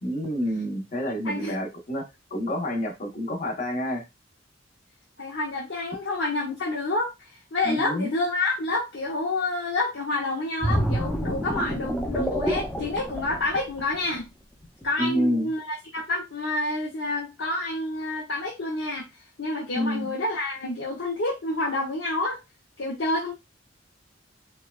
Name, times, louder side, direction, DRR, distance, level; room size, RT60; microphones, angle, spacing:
voice 1, 0.0-4.0 7.6-8.1 15.0-15.5 19.7-20.1, equal, 45° left, 1.1 m, -28 dB
voice 2, 1.2-1.6 5.2-14.3 14.8-19.0 19.4-22.4 22.8-23.3, left 2 dB, 80° left, 0.9 m, -28 dB
sound 1, 10.6-14.2 14.6-14.8, equal, 5° left, 0.6 m, -28 dB
4.5 x 2.3 x 2.3 m
head